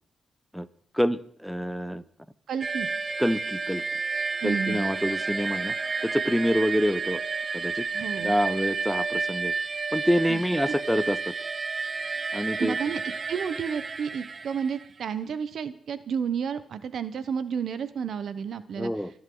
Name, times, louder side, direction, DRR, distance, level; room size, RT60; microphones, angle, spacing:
voice 1, 0.9-2.0 3.2-3.8 4.4-5.7 6.0-7.2 7.5-7.9 8.2-9.5 9.9-11.3 12.3-12.8 18.8-19.1, equal, ahead, 15 dB, 0.8 m, -26 dB
voice 2, 2.5-2.9 4.4-4.9 7.9-8.4 10.3-10.4 10.7-10.8 12.6-13.0 13.3-18.9, right 7 dB, 75° right, 13 dB, 1.0 m, -31 dB
sound 1, 2.6-15.0, right 4 dB, 45° right, 1.0 m, -31 dB
26.0 x 11.0 x 3.9 m, 0.64 s
cardioid pair, 105°, 0 cm